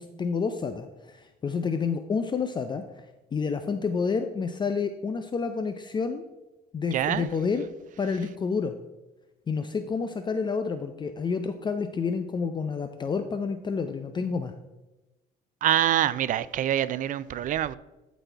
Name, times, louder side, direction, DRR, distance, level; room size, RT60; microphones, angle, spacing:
voice 1, 0.0-2.8 3.3-6.2 6.7-7.6 8.0-8.7 9.5-14.5, left 5 dB, 25° left, 0.5 m, -29 dB
voice 2, 6.9-7.3 15.6-17.7, right 11 dB, 50° right, 0.4 m, -25 dB
11.5 x 4.1 x 4.5 m
cardioid pair, 110°, 17 cm